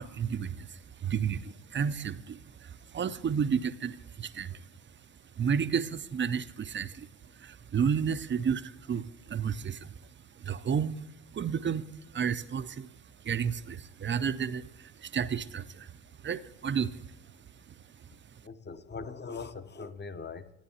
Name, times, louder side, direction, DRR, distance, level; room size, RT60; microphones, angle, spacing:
voice 1, 0.0-9.9 10.3-13.0 13.2-18.4, right 7 dB, 25° right, 13 dB, 0.5 m, -32 dB
voice 2, 18.4-20.5, left 4 dB, 20° left, 12 dB, 0.8 m, -41 dB
14.5 x 9.4 x 2.8 m, 0.99 s
hypercardioid pair, 55°, 47 cm